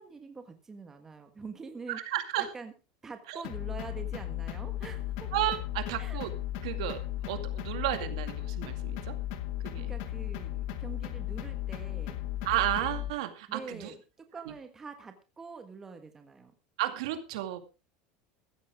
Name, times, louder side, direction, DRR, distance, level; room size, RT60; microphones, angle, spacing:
voice 1, 0.0-2.0 2.4-2.7 3.0-5.3 6.0-6.2 9.7-12.2 13.5-14.0 14.3-16.5, right 4 dB, 10° right, 6 dB, 1.5 m, -45 dB
voice 2, 1.9-2.5 3.3-3.4 5.3-6.3 6.6-9.2 9.6-9.9 12.4-13.9 14.5-14.6 16.8-17.6, right 14 dB, 75° right, 8 dB, 2.2 m, -33 dB
sound 1, 3.4-13.1, left 12 dB, 55° left, 1.7 m, -36 dB
15.0 x 13.5 x 3.6 m, 0.30 s
supercardioid pair, 180°, 3 cm